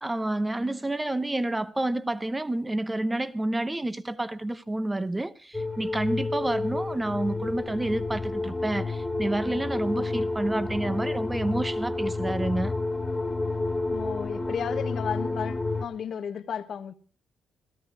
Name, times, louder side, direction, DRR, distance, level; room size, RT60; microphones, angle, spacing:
voice 1, 0.0-12.7, right 1 dB, 15° right, 0.9 m, -29 dB
sound 1, 5.5-15.8, left 2 dB, 10° left, 2.1 m, -30 dB
voice 2, 13.9-16.9, left 8 dB, 55° left, 1.2 m, -33 dB
16.5 x 13.5 x 4.7 m
cardioid pair, 90°, 0 cm